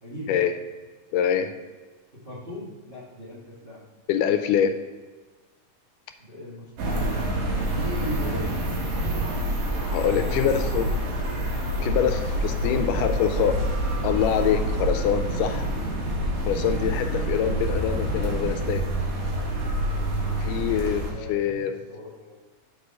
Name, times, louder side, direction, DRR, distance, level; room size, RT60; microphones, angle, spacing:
voice 1, 0.0-0.4 2.1-3.8 6.2-7.2 7.7-8.6 10.2-11.3 12.6-13.7 20.4-22.4, equal, 40° right, -7 dB, 0.8 m, -39 dB
voice 2, 1.1-1.5 4.1-4.7 9.9-10.9 11.8-13.5 14.0-15.7 16.5-18.8 20.4-21.0 21.3-21.7, left 9 dB, 80° left, 8 dB, 2.1 m, -24 dB
sound 1, 6.8-21.1, right 1 dB, 80° right, 3.2 m, -27 dB
6.8 x 4.8 x 5.4 m, 1.3 s
omnidirectional pair, 3.8 m